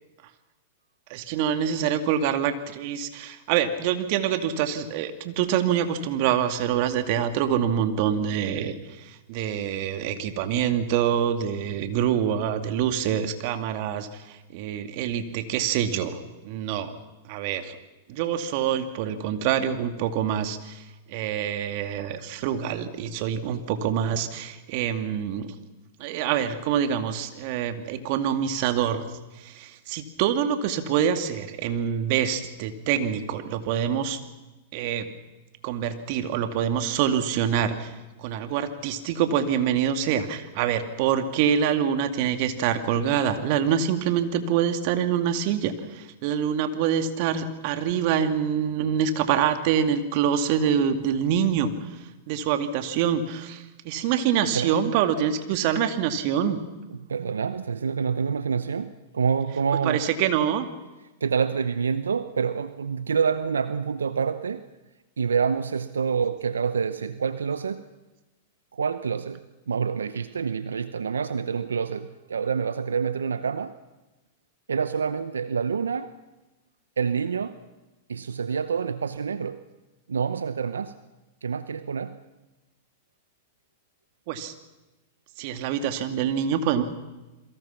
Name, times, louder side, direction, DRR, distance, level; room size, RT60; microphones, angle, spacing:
voice 1, 1.1-16.2 16.4-16.9 17.3-17.8 18.1-20.8 21.1-25.5 26.0-29.1 29.4-34.2 34.7-35.1 35.6-37.9 38.2-52.0 52.3-56.6 59.8-60.6 84.3-84.5 85.4-86.8, right 8 dB, 55° right, 8 dB, 2.5 m, -25 dB
voice 2, 57.1-60.1 61.2-64.6 65.2-67.8 68.7-73.8 74.7-76.1 77.0-77.6 78.1-79.6 80.1-81.0 81.4-82.2, right 6 dB, 90° right, 13 dB, 0.8 m, -27 dB
28.5 x 22.5 x 5.9 m, 1.1 s
hypercardioid pair, 110°, 0 cm